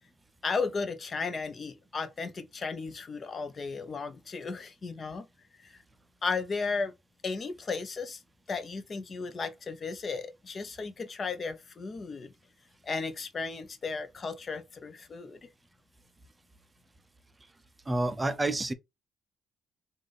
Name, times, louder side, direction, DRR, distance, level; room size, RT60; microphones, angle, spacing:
voice 1, 0.4-5.3 5.6-5.8 6.2-6.9 7.2-8.2 8.5-12.3 12.8-15.5, left 4 dB, 40° left, 0.8 m, -35 dB
voice 2, 17.9-18.7, right 2 dB, 20° right, 0.6 m, -28 dB
3.4 x 2.5 x 3.9 m
cardioid pair, 90°, 0 cm